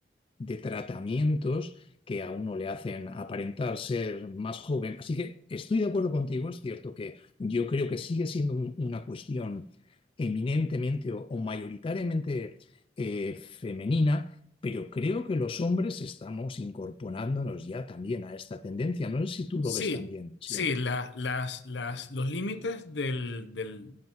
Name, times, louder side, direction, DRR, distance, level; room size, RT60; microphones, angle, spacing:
voice 1, 0.4-9.6 10.2-12.5 13.0-14.4 14.6-20.7, left 3 dB, 30° left, 0.3 m, -31 dB
voice 2, 19.6-20.0 20.5-24.0, left 3 dB, 70° left, 0.8 m, -32 dB
17.0 x 7.4 x 3.0 m
head